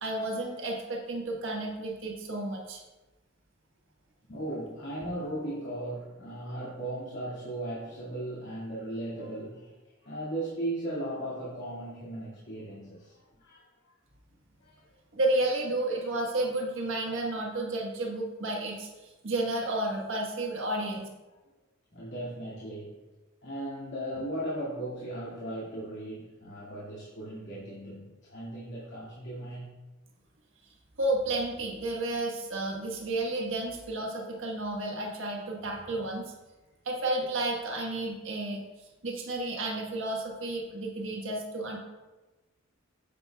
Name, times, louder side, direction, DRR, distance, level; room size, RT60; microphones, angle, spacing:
voice 1, 0.0-2.8 15.1-21.1 31.0-36.3 36.8-38.6 39.0-41.8, right 2 dB, 65° right, -1 dB, 1.3 m, -31 dB
voice 2, 4.3-13.7 14.6-14.9 21.9-23.0 23.4-29.8, right 1 dB, 60° left, -9 dB, 2.1 m, -37 dB
9.5 x 9.0 x 2.3 m, 1.2 s
head